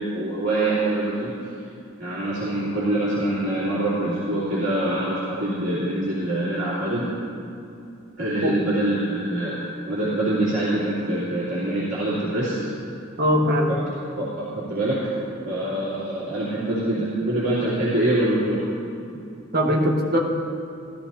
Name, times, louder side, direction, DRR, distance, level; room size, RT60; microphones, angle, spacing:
voice 1, 0.0-1.3 2.0-7.1 8.2-9.6 9.9-12.5 14.2-15.0 15.4-18.6, right 1 dB, 65° right, -11 dB, 2.9 m, -24 dB
voice 2, 13.2-13.7 19.5-20.2, equal, 50° right, 0 dB, 1.4 m, -20 dB
15.0 x 13.5 x 2.9 m, 2.6 s
head